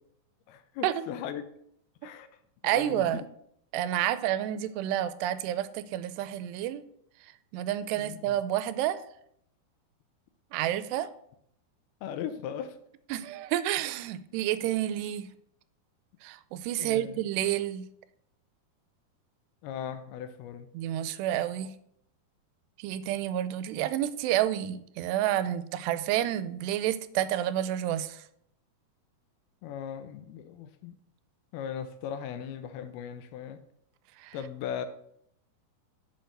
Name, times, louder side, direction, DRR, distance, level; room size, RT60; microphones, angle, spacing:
voice 1, 0.5-1.4 2.0-2.3 2.7-3.2 7.9-8.4 12.0-12.8 16.8-17.2 19.6-20.7 29.6-31.0 31.5-33.6 34.3-34.9, left 8 dB, 80° left, 2.5 m, -38 dB
voice 2, 2.6-3.2 3.7-6.8 7.5-9.0 10.5-11.1 13.1-15.3 16.2-17.9 20.7-21.7 22.8-28.2 34.2-34.4, right 12 dB, 90° right, 2.8 m, -29 dB
8.0 x 7.0 x 6.6 m
omnidirectional pair, 4.7 m